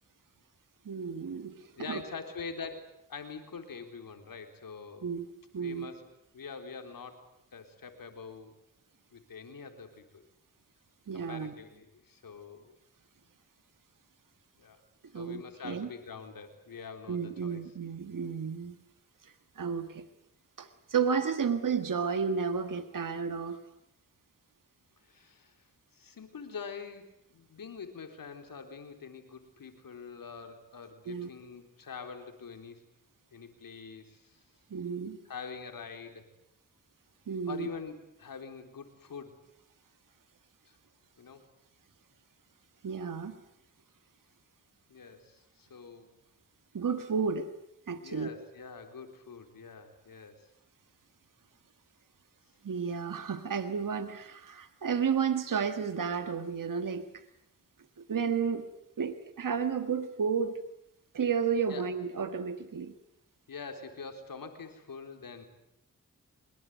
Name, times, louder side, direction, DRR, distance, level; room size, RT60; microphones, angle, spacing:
voice 1, 0.8-2.0 5.0-5.3 5.5-5.9 11.1-11.5 15.1-15.9 17.1-18.8 19.2-20.0 20.6-23.6 31.0-31.3 34.7-35.2 37.3-37.7 42.8-43.4 46.7-47.5 47.9-48.3 52.6-57.2 58.1-58.7 59.0-60.6 61.1-62.9, right 6 dB, 70° right, 10 dB, 1.6 m, -32 dB
voice 2, 1.8-5.1 5.6-6.1 6.3-7.2 7.5-8.5 9.1-10.2 11.1-12.7 14.6-14.8 15.1-17.6 25.0-25.6 25.9-32.9 33.3-34.4 35.3-36.3 37.5-39.4 40.7-40.8 41.2-41.4 44.9-46.1 48.0-50.5 61.7-61.9 63.5-65.4, left 5 dB, 85° left, 6 dB, 4.0 m, -45 dB
24.5 x 21.5 x 9.3 m, 0.78 s
cardioid pair, 55°, 33 cm